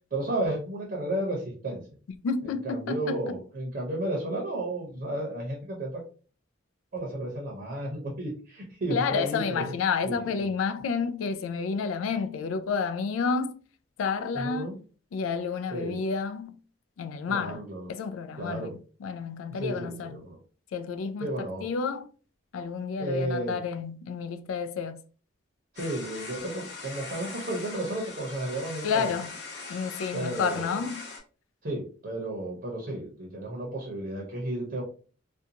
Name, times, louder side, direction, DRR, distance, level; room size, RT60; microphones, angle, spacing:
voice 1, 0.1-1.8 2.4-6.0 6.9-9.6 10.0-10.1 14.3-14.7 15.7-16.0 17.3-17.9 18.4-18.7 19.5-20.4 21.2-21.7 23.0-23.6 25.7-29.1 30.1-30.8 31.6-34.8, right 1 dB, 50° right, 0.7 m, -33 dB
voice 2, 2.2-3.4 8.9-13.6 14.0-14.7 15.1-16.6 17.0-20.2 20.7-22.1 22.5-25.0 28.8-29.3 29.7-31.1, left 5 dB, 90° left, 0.3 m, -30 dB
sound 1, 25.8-31.2, left 4 dB, 60° left, 0.9 m, -41 dB
2.5 x 2.2 x 2.7 m
head